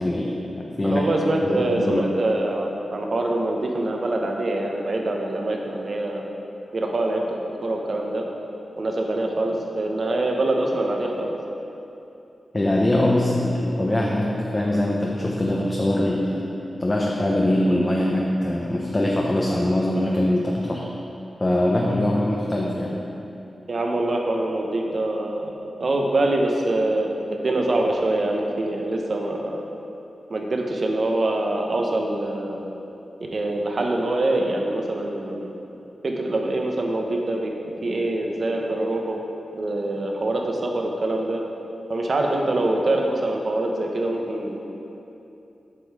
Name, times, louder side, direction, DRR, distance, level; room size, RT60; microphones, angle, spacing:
voice 1, 0.0-1.1 1.4-2.1 12.5-16.5 16.8-20.9 21.4-23.0, left 1 dB, 25° left, -2 dB, 0.7 m, -22 dB
voice 2, 0.8-6.2 6.7-7.2 7.6-8.2 8.8-11.3 23.7-25.5 25.8-29.6 30.3-32.7 33.3-35.5 36.0-37.5 37.8-39.2 39.6-41.4 41.9-44.6, right 2 dB, 50° right, 1 dB, 0.9 m, -24 dB
7.7 x 5.5 x 4.8 m, 2.8 s
wide cardioid pair, 110°, 0 cm